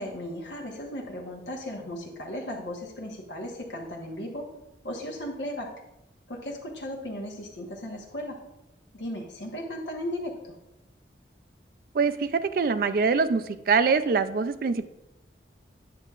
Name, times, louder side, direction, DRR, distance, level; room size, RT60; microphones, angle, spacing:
voice 1, 0.0-4.5 4.8-5.7 6.3-8.4 8.9-10.6, left 1 dB, 80° left, -1 dB, 1.0 m, -36 dB
voice 2, 11.9-14.8, right 5 dB, 50° right, 12 dB, 0.3 m, -24 dB
8.9 x 6.7 x 2.4 m, 0.89 s
head